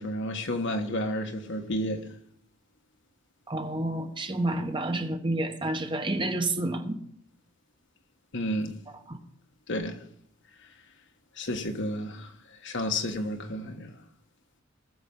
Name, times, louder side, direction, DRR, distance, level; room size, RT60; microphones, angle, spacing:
voice 1, 0.0-2.1 8.3-8.7 9.7-10.0 11.4-12.3 12.6-13.9, left 1 dB, 65° left, 1.5 m, -31 dB
voice 2, 3.5-7.0 9.1-9.2, right 2 dB, 25° right, 1.3 m, -29 dB
19.5 x 7.0 x 5.5 m
head